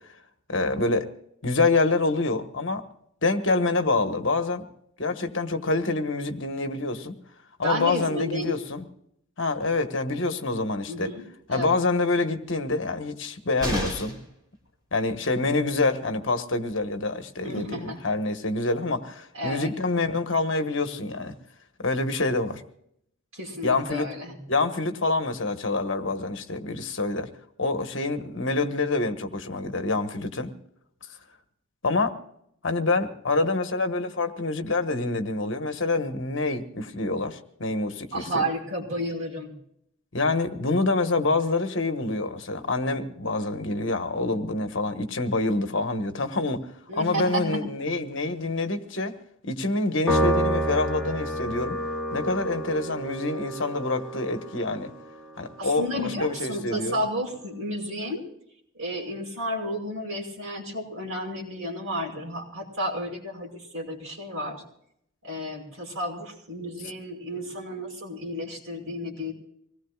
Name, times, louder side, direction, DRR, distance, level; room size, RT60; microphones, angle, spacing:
voice 1, 0.5-1.1 1.4-2.8 3.2-4.6 5.0-7.2 7.6-8.8 9.4-11.1 11.5-14.2 14.9-21.3 21.8-22.6 23.6-24.1 24.5-27.3 27.6-30.5 31.8-32.2 32.6-38.4 40.1-46.6 46.9-49.2 49.4-51.8 52.1-54.9 55.4-57.0, left 3 dB, 60° left, 1.4 m, -26 dB
voice 2, 7.6-8.6 10.9-11.2 11.5-11.8 17.4-18.0 19.3-19.7 23.3-24.4 38.1-39.5 46.9-47.6 55.6-58.2 58.7-64.6 65.2-69.3, equal, 75° right, 5.4 m, -32 dB
sound 1, 13.6-14.3 16.3-16.4 16.7-16.8, equal, 20° right, 4.0 m, -31 dB
Piano, 50.1-56.6, right 1 dB, ahead, 2.4 m, -30 dB
25.5 x 18.5 x 2.4 m
head